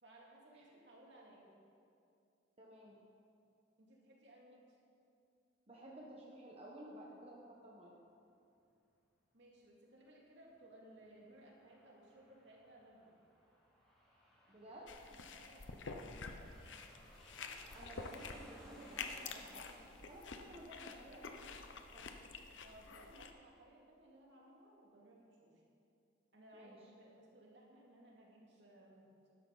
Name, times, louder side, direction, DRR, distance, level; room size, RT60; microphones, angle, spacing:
voice 1, 0.0-1.6 3.8-4.8 9.3-13.1 15.3-16.6 22.6-25.6 26.3-29.1, right 1 dB, 70° right, -3 dB, 2.4 m, -61 dB
voice 2, 2.6-3.0 5.7-8.0 14.5-15.2 17.7-19.7 20.1-21.5 21.9-22.1 26.5-26.8, right 1 dB, 35° right, -4 dB, 1.2 m, -54 dB
Aircraft, 10.9-22.1, equal, 5° left, 2.9 m, -63 dB
sound 1, 14.9-23.3, left 4 dB, 85° left, 0.8 m, -49 dB
12.0 x 11.0 x 4.0 m, 2.5 s
head